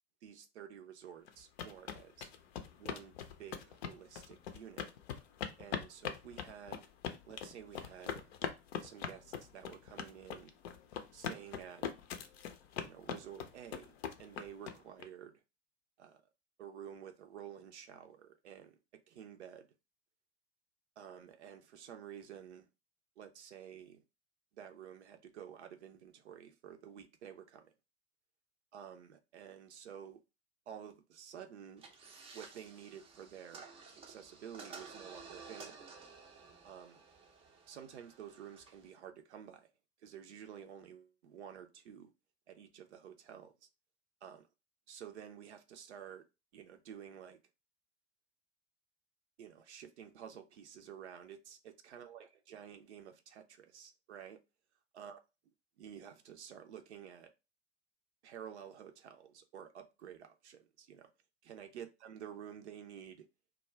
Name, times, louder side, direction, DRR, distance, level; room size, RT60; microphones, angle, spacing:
voice 1, 0.2-2.3 2.8-3.1 3.4-4.9 5.6-6.9 7.2-8.4 8.8-10.5 11.1-11.8 12.8-15.4 16.0-16.2 16.6-18.8 19.1-19.6 21.0-22.7 23.2-24.0 24.5-27.7 28.7-30.2 30.7-31.8 32.3-33.6 34.0-35.9 36.6-37.0 37.7-39.7 40.0-42.1 42.5-43.5 44.2-44.4 44.9-46.2 46.5-47.4 49.4-54.4 54.9-55.2 55.8-57.3 58.2-61.1 61.4-63.3, right 9 dB, 70° right, 0.5 m, -51 dB
sound 1, 1.3-15.0, left 8 dB, 60° left, 0.5 m, -42 dB
sound 2, 31.8-38.9, right 4 dB, 15° right, 0.4 m, -53 dB
2.3 x 2.1 x 3.1 m
figure-of-eight pair, 80°, 35 cm